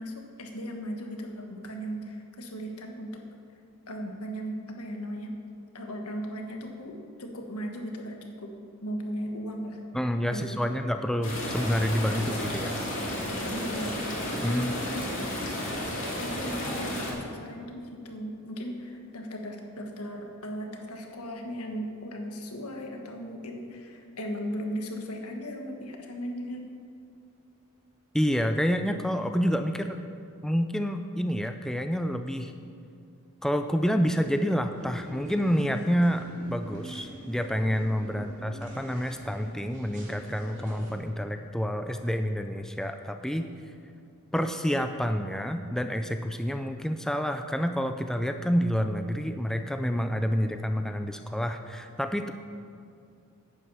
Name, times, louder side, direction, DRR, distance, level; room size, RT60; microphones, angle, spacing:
voice 1, 0.0-3.2 3.9-5.4 5.7-8.5 8.8-9.8 10.3-10.7 13.5-14.0 14.5-15.1 16.2-26.7 38.1-38.5, equal, 85° left, 3 dB, 1.5 m, -37 dB
voice 2, 9.9-12.8 14.4-14.7 28.1-30.0 30.4-32.5 33.4-43.5 44.3-52.3, equal, ahead, 7 dB, 0.4 m, -28 dB
sound 1, 11.2-17.1, left 1 dB, 60° left, 2.2 m, -32 dB
sound 2, 34.7-40.9, right 1 dB, 60° right, 2.9 m, -45 dB
11.0 x 8.6 x 5.6 m, 2.4 s
head